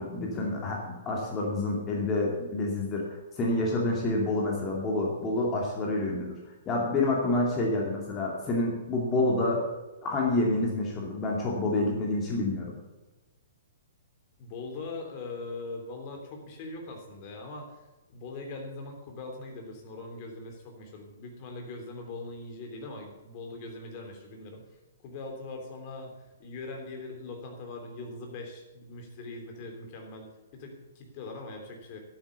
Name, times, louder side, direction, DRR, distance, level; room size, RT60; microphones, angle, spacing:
voice 1, 0.0-3.0 3.4-6.4 6.7-9.6 10.0-12.8, left 2 dB, 20° left, -2 dB, 2.5 m, -28 dB
voice 2, 14.4-17.8 18.1-24.6 25.0-30.3 30.5-32.0, left 3 dB, 40° left, 3 dB, 3.3 m, -41 dB
11.5 x 9.0 x 7.0 m, 1.1 s
figure-of-eight pair, 115°, 0 cm